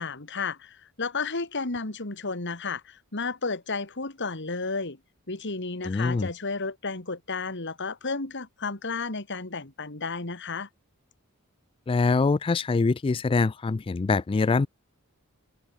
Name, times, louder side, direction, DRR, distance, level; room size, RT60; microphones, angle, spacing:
voice 1, 0.0-5.0 5.3-10.7, left 4 dB, 55° left, 2.6 m, -32 dB
voice 2, 5.8-6.3 11.9-14.7, left 4 dB, 25° left, 0.3 m, -24 dB
head